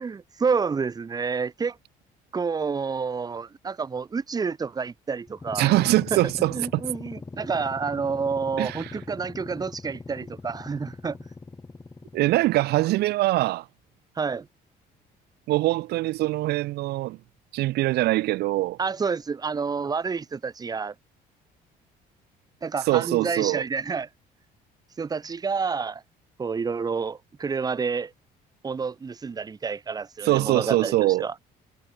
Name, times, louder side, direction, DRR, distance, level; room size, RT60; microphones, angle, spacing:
voice 1, 0.0-1.8 2.3-5.7 6.1-6.2 6.5-11.2 14.2-14.5 18.8-20.9 22.6-24.1 25.0-26.0 26.4-28.1 28.6-31.3, right 5 dB, 25° right, 0.8 m, -29 dB
sound 1, 5.3-12.6, left 3 dB, 20° left, 3.7 m, -41 dB
voice 2, 5.5-6.8 8.6-9.0 12.1-13.7 15.5-17.2 17.5-18.8 22.8-23.6 30.2-31.3, right 17 dB, 75° right, 0.5 m, -23 dB
cardioid pair, 110°, 17 cm